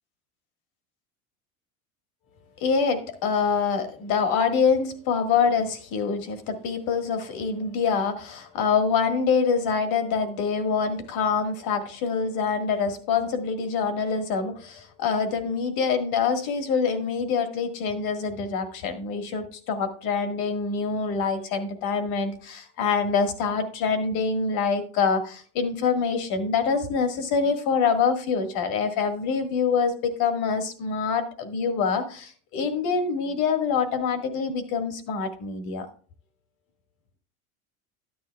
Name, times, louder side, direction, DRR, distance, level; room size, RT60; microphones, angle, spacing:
voice 1, 2.6-35.9, left 5 dB, 55° left, 7 dB, 1.8 m, -25 dB
12.5 x 9.6 x 2.3 m, 0.44 s
hypercardioid pair, 90°, 42 cm